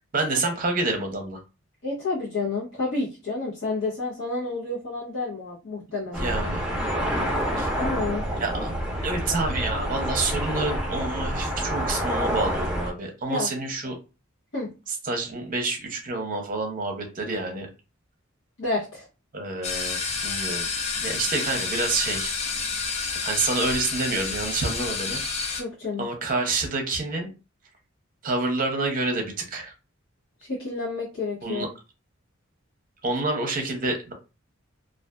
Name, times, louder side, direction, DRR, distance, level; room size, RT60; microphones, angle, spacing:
voice 1, 0.1-1.4 6.2-6.6 7.6-7.7 8.4-8.7 9.0-14.0 15.0-17.7 19.3-20.6 21.0-22.3 22.9-25.2 26.0-27.3 28.2-29.7 31.4-31.7 33.0-34.1, right 3 dB, 45° right, 3 dB, 0.6 m, -28 dB
voice 2, 1.8-6.3 7.8-8.3 13.3-13.5 14.5-14.7 18.6-19.1 25.6-26.1 30.4-31.7, left 3 dB, 65° left, -8 dB, 0.8 m, -30 dB
sound 1, 6.1-12.9, equal, 5° right, 0.7 m, -28 dB
sound 2, 19.6-25.6, left 4 dB, 30° left, 0.4 m, -29 dB
2.4 x 2.4 x 2.2 m, 0.30 s
head